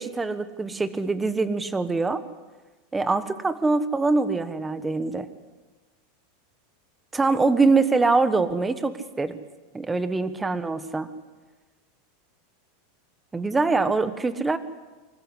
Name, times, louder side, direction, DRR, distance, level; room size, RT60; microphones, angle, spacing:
voice 1, 0.0-2.2 2.9-5.3 7.1-9.4 9.7-11.1 13.3-14.6, right 3 dB, 10° right, 12 dB, 1.2 m, -24 dB
25.0 x 14.5 x 10.0 m, 1.2 s
supercardioid pair, 140°, 0 cm